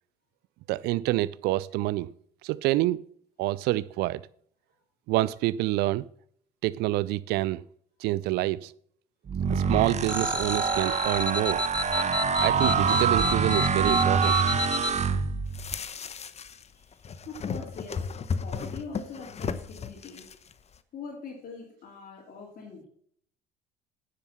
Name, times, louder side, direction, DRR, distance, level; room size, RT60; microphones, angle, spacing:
voice 1, 0.7-2.1 2.4-3.0 3.4-4.2 5.1-6.1 6.6-7.6 8.0-8.7 9.5-11.6 12.4-14.4, right 17 dB, 65° right, 0.4 m, -27 dB
sound 1, 9.3-15.7, right 5 dB, 40° right, 1.3 m, -26 dB
sound 2, 10.1-14.9, left 2 dB, 5° left, 1.7 m, -31 dB
sound 3, 15.5-16.6 16.9-20.5, left 5 dB, 35° left, 1.0 m, -35 dB
voice 2, 16.7-18.1 18.4-20.2 20.9-22.9, left 4 dB, 55° left, 3.0 m, -43 dB
9.8 x 7.5 x 5.7 m
hypercardioid pair, 60°, 18 cm